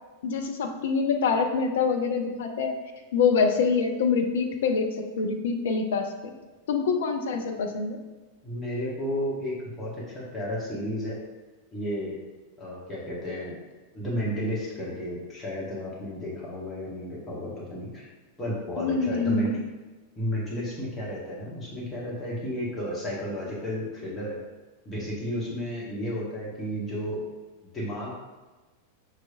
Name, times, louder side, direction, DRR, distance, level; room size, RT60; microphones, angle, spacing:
voice 1, 0.2-2.7 3.1-6.1 6.7-8.0 18.8-19.6, left 5 dB, 60° left, 4 dB, 0.5 m, -25 dB
voice 2, 8.4-11.2 11.7-12.1 12.6-13.5 13.9-18.0 18.4-19.6 20.2-24.4 24.8-27.2 27.7-28.2, equal, 15° left, -6 dB, 1.3 m, -32 dB
6.1 x 3.2 x 2.5 m, 1.2 s
figure-of-eight pair, 90°, 0 cm